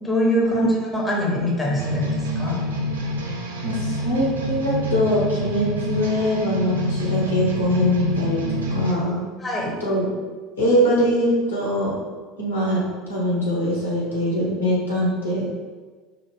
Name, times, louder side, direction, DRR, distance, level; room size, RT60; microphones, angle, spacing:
voice 1, 0.0-2.6 9.4-9.7, equal, 15° left, -3 dB, 1.1 m, -23 dB
sound 1, 1.8-8.9, equal, 70° right, 0.5 m, -27 dB
voice 2, 3.6-9.2 9.6-10.2 10.6-12.0 12.4-15.5, equal, 80° left, -5 dB, 1.3 m, -22 dB
5.0 x 2.4 x 3.3 m, 1.4 s
figure-of-eight pair, 70°, 0 cm